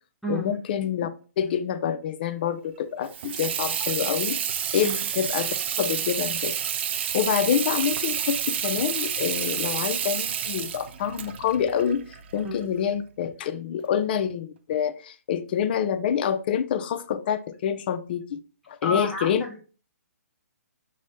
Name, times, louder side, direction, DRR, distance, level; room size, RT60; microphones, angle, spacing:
voice 1, 0.3-1.1 1.4-4.4 4.7-5.5 5.8-6.6 7.1-12.0 12.3-18.4 18.7-19.4, left 8 dB, 35° left, 0.4 m, -27 dB
Water tap faucet / Sink (filling or washing), 3.0-12.6, right 8 dB, 45° right, 0.4 m, -29 dB
voice 2, 18.8-19.6, equal, ahead, 0.7 m, -31 dB
6.0 x 2.0 x 4.2 m
hypercardioid pair, 150°, 9 cm